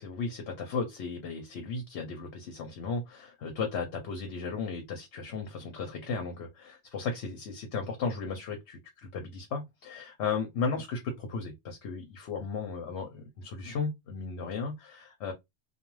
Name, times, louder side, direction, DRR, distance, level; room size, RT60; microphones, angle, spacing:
voice 1, 0.0-15.3, left 4 dB, 75° left, 0.9 m, -35 dB
2.4 x 2.3 x 3.0 m
omnidirectional pair, 1.2 m